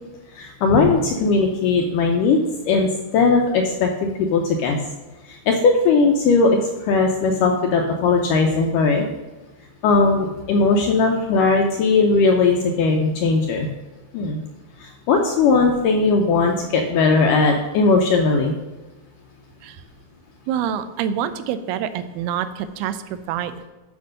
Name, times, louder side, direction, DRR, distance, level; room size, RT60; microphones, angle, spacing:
voice 1, 0.4-2.4 2.7-4.8 5.3-6.5 6.8-9.1 9.8-13.7 14.1-14.4 14.8-18.6, left 4 dB, 75° left, 2 dB, 2.0 m, -18 dB
voice 2, 20.5-23.5, right 9 dB, 85° right, 12 dB, 2.5 m, -26 dB
8.3 x 5.5 x 6.5 m, 1.1 s
omnidirectional pair, 4.4 m